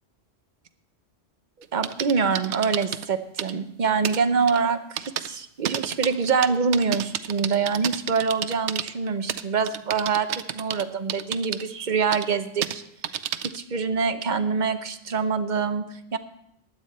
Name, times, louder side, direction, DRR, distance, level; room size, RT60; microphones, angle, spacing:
sound 1, 1.6-3.1 3.4-3.5 4.0-4.2 4.5-4.6 5.0-5.3 5.6-8.9 9.3-10.8 11.1-11.6 12.1-12.2 12.6-12.7 13.0-13.6, right 10 dB, 85° right, 0.9 m, -30 dB
voice 1, 1.7-10.3 10.5-12.8 13.5-16.2, right 5 dB, 50° right, 10 dB, 0.9 m, -25 dB
15.5 x 10.5 x 4.3 m, 0.78 s
omnidirectional pair, 1.1 m